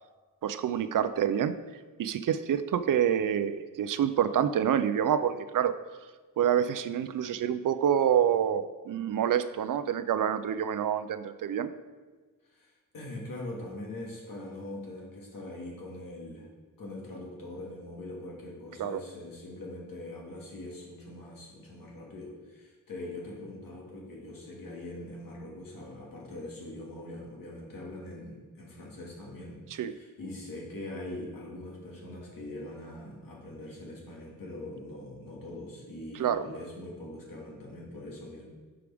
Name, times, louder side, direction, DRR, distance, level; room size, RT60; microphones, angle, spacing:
voice 1, 0.4-1.5 2.0-5.8 6.4-11.7 18.8-19.0 29.8-29.9 36.2-36.4, right 9 dB, 65° right, 12 dB, 0.5 m, -27 dB
voice 2, 12.5-16.5 16.8-38.5, left 1 dB, 75° left, -3 dB, 2.0 m, -42 dB
11.0 x 4.9 x 3.5 m, 1.4 s
wide cardioid pair, 175°, 35 cm